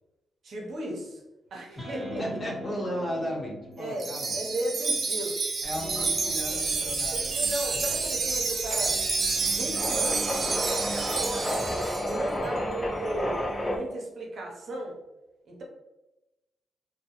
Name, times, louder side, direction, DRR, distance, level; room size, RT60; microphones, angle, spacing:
voice 1, 0.4-1.2 1.5-2.2 3.8-4.1 4.3-5.4 5.9-9.0 9.4-11.6 12.1-15.0 15.5-15.6, right 1 dB, 65° right, -1 dB, 0.7 m, -36 dB
sound 1, 1.8-5.1 5.7-12.5, equal, 15° right, 0.9 m, -45 dB
voice 2, 2.2-4.4 5.6-7.5, equal, 40° left, -3 dB, 0.9 m, -35 dB
Wind chime, 4.0-12.2, right 4 dB, 50° right, 0.4 m, -29 dB
sound 2, 5.6-13.8, equal, 25° left, 0.5 m, -33 dB
2.2 x 2.2 x 2.9 m, 1.0 s
supercardioid pair, 60°, 0 cm